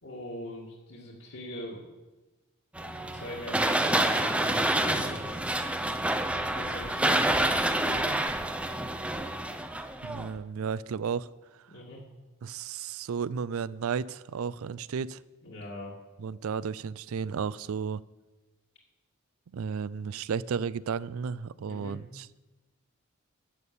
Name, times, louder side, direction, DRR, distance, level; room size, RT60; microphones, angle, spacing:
voice 1, 0.0-1.8 3.1-5.5 6.5-7.2 7.8-8.2 11.7-12.0 15.4-15.9 21.7-22.0, left 1 dB, 70° left, -6 dB, 2.2 m, -41 dB
sound 1, 2.8-10.4, right 1 dB, 5° right, 0.5 m, -28 dB
voice 2, 10.0-11.3 12.4-15.2 16.2-18.0 19.5-22.4, right 6 dB, 75° right, 20 dB, 0.4 m, -33 dB
11.0 x 8.4 x 6.9 m, 1.1 s
head